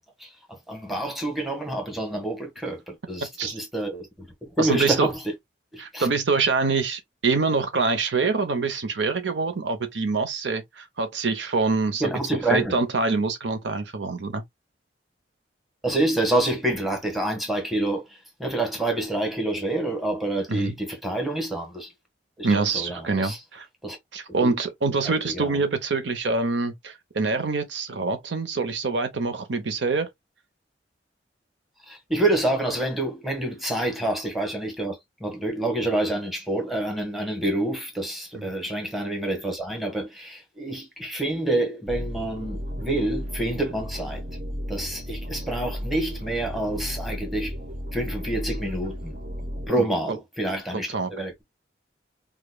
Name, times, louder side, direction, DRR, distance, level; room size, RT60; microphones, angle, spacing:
voice 1, 0.2-5.2 5.7-6.1 12.0-12.8 15.8-21.9 22.4-23.4 23.8-24.0 24.4-24.5 25.0-25.6 31.9-44.2 44.7-47.5 47.9-49.2 49.7-51.4, right 1 dB, ahead, 1.2 m, -27 dB
voice 2, 4.6-5.1 5.8-12.0 12.5-14.4 20.5-20.7 22.4-23.7 24.1-30.1 38.3-38.4 49.7-50.2 50.9-51.1, right 4 dB, 80° right, 0.8 m, -25 dB
sound 1, 41.9-49.7, equal, 45° right, 0.9 m, -34 dB
5.0 x 2.4 x 2.2 m
head